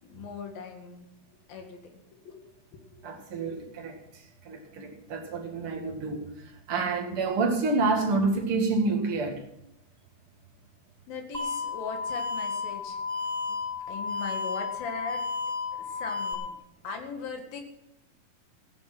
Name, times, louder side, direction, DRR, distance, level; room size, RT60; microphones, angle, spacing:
voice 1, 0.0-1.1 1.5-2.5 3.3-3.4 11.1-13.0 13.9-15.2 15.9-16.6 16.8-17.6, left 5 dB, 85° left, 3.8 m, -39 dB
voice 2, 3.0-9.4, right 3 dB, 45° right, 2.6 m, -28 dB
sound 1, 11.3-16.3, left 4 dB, 15° right, 1.2 m, -32 dB
15.5 x 10.0 x 6.1 m
omnidirectional pair, 4.0 m